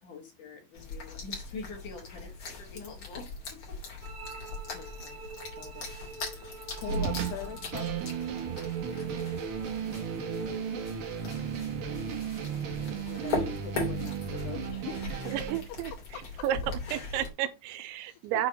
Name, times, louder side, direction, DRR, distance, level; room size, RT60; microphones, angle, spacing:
voice 1, 0.0-4.1, left 4 dB, 55° left, 2.7 m, -45 dB
sound 1, 0.7-17.3, left 3 dB, 35° left, 3.2 m, -40 dB
sound 2, 4.0-11.0, right 3 dB, 50° right, 1.6 m, -43 dB
voice 2, 4.7-5.2 5.5-5.9 6.7-8.3 12.9-15.3 15.9-16.5 18.0-18.5, left 10 dB, 80° left, 2.5 m, -43 dB
sound 3, 6.9-15.6, right 8 dB, 65° right, 2.2 m, -35 dB
voice 3, 15.3-15.9 16.4-16.6 16.9-18.5, right 11 dB, 85° right, 3.1 m, -31 dB
7.6 x 4.7 x 5.9 m
omnidirectional pair, 5.4 m